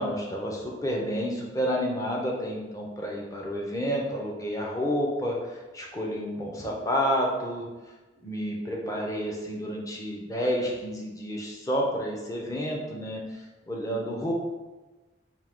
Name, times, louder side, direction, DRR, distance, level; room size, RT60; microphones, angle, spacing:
voice 1, 0.0-7.7 8.2-14.3, equal, 15° left, -2 dB, 0.5 m, -30 dB
3.6 x 2.7 x 3.6 m, 1.2 s
head